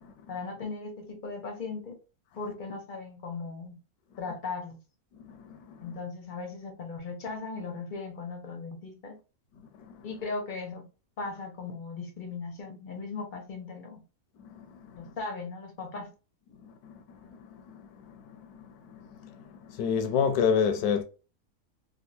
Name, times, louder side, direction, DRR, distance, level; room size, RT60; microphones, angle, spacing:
voice 1, 0.3-2.0 2.4-3.8 4.2-4.8 5.8-9.2 10.0-10.8 11.2-14.0 14.9-16.1, left 4 dB, 50° left, 0.6 m, -38 dB
voice 2, 5.2-5.9 9.8-10.1 14.4-15.1 16.6-21.0, left 6 dB, 80° left, 1.1 m, -31 dB
3.4 x 2.4 x 2.6 m
omnidirectional pair, 1.6 m